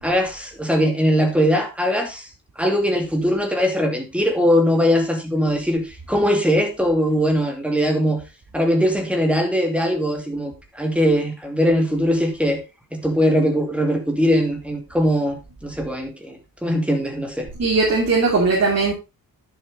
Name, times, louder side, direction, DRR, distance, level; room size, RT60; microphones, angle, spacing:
voice 1, 0.0-2.3 2.6-8.2 8.5-12.6 12.9-17.5, equal, 5° right, 3 dB, 2.5 m, -21 dB
voice 2, 17.6-18.9, right 3 dB, 45° right, -3 dB, 2.8 m, -18 dB
10.5 x 7.4 x 3.8 m, 0.26 s
wide cardioid pair, 140°, 35 cm